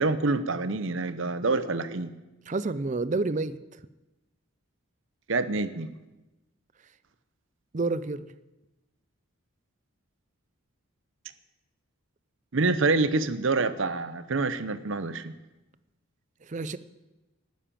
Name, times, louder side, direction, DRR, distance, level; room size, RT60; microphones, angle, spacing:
voice 1, 0.0-2.1 5.3-5.9 12.5-15.3, right 3 dB, 65° right, 12 dB, 0.8 m, -26 dB
voice 2, 2.5-3.8 7.7-8.3 16.4-16.8, right 3 dB, 35° right, 15 dB, 0.5 m, -29 dB
11.5 x 10.0 x 7.5 m, 1.0 s
head